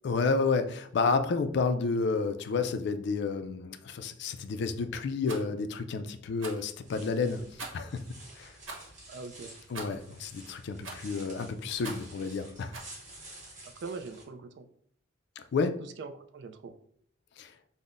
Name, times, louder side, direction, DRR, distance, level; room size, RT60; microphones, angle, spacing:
voice 1, 0.0-7.4 7.7-8.0 8.4-8.5 9.7-12.8 15.4-15.8 17.4-17.5, left 4 dB, 60° left, 8 dB, 0.3 m, -30 dB
Rattle, 5.2-5.5 6.4-6.7 7.6-7.9 8.6-8.9 9.7-10.1 10.8-11.2 11.8-12.1 12.7-12.9, right 3 dB, 80° right, 0.9 m, -42 dB
sound 1, 6.8-14.2, right 1 dB, 40° right, 1.1 m, -51 dB
voice 2, 9.1-9.5 13.8-14.7 15.8-16.8, right 4 dB, 60° right, 9 dB, 0.3 m, -42 dB
5.4 x 2.1 x 2.4 m, 0.63 s
head